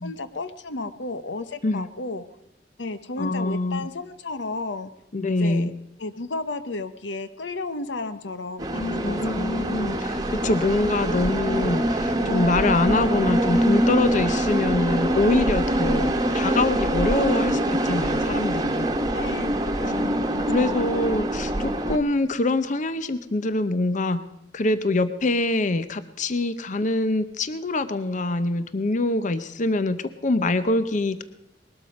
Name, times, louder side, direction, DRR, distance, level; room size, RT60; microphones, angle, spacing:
voice 1, 0.0-2.2 2.8-4.9 5.4-5.7 6.0-9.4 19.0-19.5 19.8-20.9, left 3 dB, 85° left, 12 dB, 0.9 m, -33 dB
voice 2, 3.2-3.9 5.1-5.7 9.0-19.0 20.5-24.2 24.5-31.2, left 2 dB, 45° left, 13 dB, 0.7 m, -24 dB
sound 1, 8.6-22.0, right 1 dB, 20° right, 1.2 m, -24 dB
20.0 x 12.5 x 5.2 m, 0.88 s
head